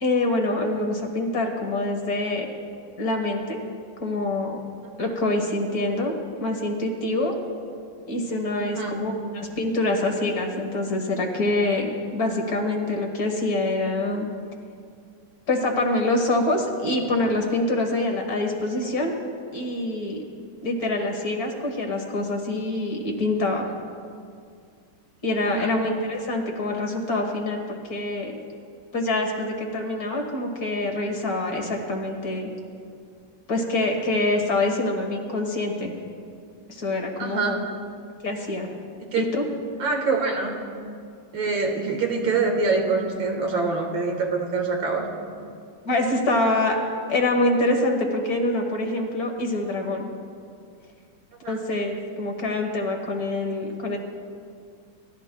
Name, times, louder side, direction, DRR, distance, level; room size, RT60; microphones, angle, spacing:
voice 1, 0.0-2.5 3.0-3.6 4.0-4.6 5.0-7.3 8.1-14.3 15.5-19.1 19.5-20.2 20.6-23.7 25.2-28.4 28.9-32.5 33.5-35.9 36.7-37.6 38.2-38.7 39.2-39.4 41.4-41.5 45.9-46.8 47.1-50.1 51.5-54.0, left 2 dB, 50° left, 2 dB, 1.7 m, -25 dB
voice 2, 8.6-9.0 25.4-25.7 37.2-37.6 39.0-39.3 39.8-40.5 41.3-45.1 51.4-51.6, right 4 dB, 70° right, 2 dB, 2.2 m, -25 dB
29.0 x 13.0 x 2.2 m, 2.3 s
omnidirectional pair, 2.2 m